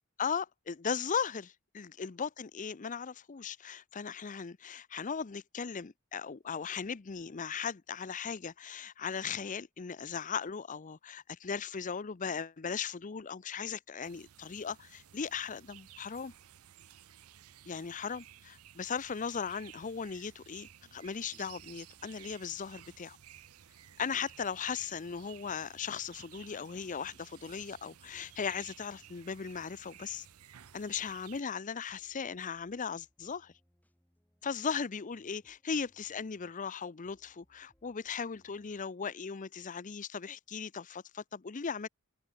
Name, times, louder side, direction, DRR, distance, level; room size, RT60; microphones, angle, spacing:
voice 1, 0.2-16.3 17.7-23.2 24.0-30.3 30.7-33.5 34.4-41.9, left 6 dB, 35° left, 0.6 m, -38 dB
sound 1, 14.0-31.4, right 11 dB, 85° right, 0.7 m, -56 dB
sound 2, 19.6-38.9, equal, 5° left, 4.0 m, -74 dB
head